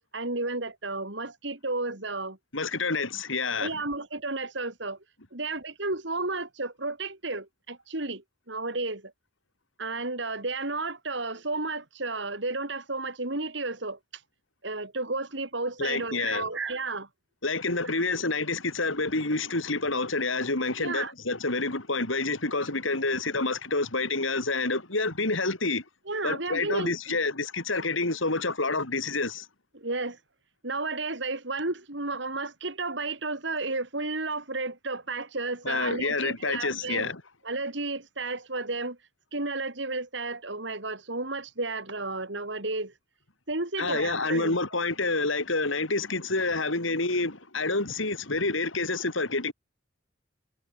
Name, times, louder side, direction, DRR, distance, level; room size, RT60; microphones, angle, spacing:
voice 1, 0.1-2.4 3.6-5.0 5.3-9.1 9.8-14.2 14.6-17.1 17.9-18.0 20.8-21.1 26.1-27.2 27.7-27.8 29.7-30.2 30.6-37.1 37.4-39.0 39.3-42.9 43.5-44.6, right 3 dB, 65° right, 3.4 m, -32 dB
voice 2, 2.5-3.8 15.8-16.4 17.4-25.8 26.2-29.5 35.6-37.2 43.8-49.5, left 3 dB, 80° left, 4.4 m, -28 dB
head